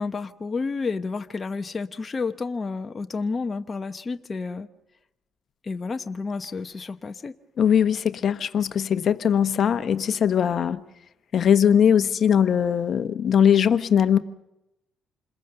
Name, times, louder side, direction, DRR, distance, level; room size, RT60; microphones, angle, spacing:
voice 1, 0.0-4.7 5.6-7.4, left 4 dB, 35° left, 1.0 m, -30 dB
voice 2, 7.6-10.8 11.3-14.2, left 8 dB, 60° left, 1.1 m, -20 dB
27.5 x 21.5 x 6.9 m
cardioid pair, 90°, 0 cm